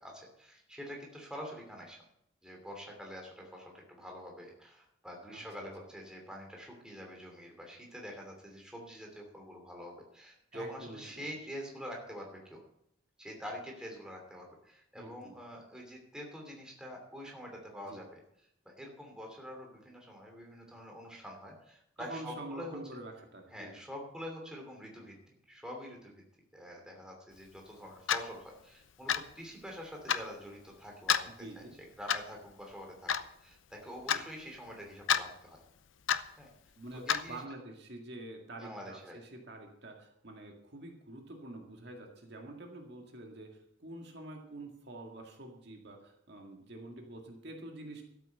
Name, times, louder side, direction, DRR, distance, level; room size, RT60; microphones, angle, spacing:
voice 1, 0.0-2.0 2.4-12.6 13.2-18.2 18.6-22.8 23.5-25.1 25.5-26.1 26.5-31.7 32.0-33.1 33.4-35.6 36.4-36.5 37.1-37.4 38.6-39.2, equal, 5° right, 0 dB, 2.8 m, -46 dB
voice 2, 10.5-11.3 14.9-15.4 17.8-18.0 22.0-23.7 31.3-31.8 34.1-34.2 36.8-48.0, right 1 dB, 55° right, 2 dB, 2.0 m, -47 dB
Clock, 28.1-28.3 29.1-29.3 30.1-30.2 31.1-31.3 32.1-32.3 33.1-33.2 34.1-34.2 35.1-35.2 36.1-36.3 37.1-37.2, left 8 dB, 75° left, 0.7 m, -28 dB
13.0 x 8.3 x 6.8 m, 0.74 s
head